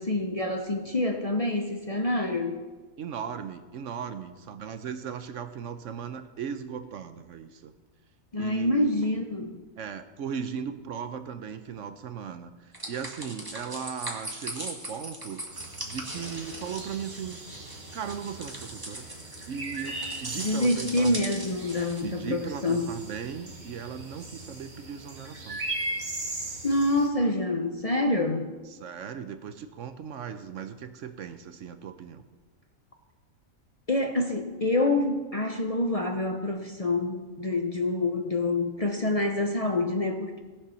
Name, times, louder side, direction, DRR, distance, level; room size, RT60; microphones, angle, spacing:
voice 1, 0.0-2.6 8.3-9.6 20.4-22.9 26.6-28.5 33.9-40.4, left 2 dB, 35° left, 4 dB, 0.7 m, -27 dB
voice 2, 3.0-7.7 8.4-9.0 9.8-15.4 15.8-17.4 17.9-19.1 19.5-21.2 22.0-25.6 28.7-32.2, right 7 dB, 70° right, 10 dB, 1.0 m, -37 dB
sound 1, 12.7-22.0, right 1 dB, 15° right, 1.6 m, -40 dB
sound 2, 15.5-27.1, right 2 dB, 35° right, 1.5 m, -39 dB
17.0 x 6.8 x 5.7 m, 1.3 s
omnidirectional pair, 1.4 m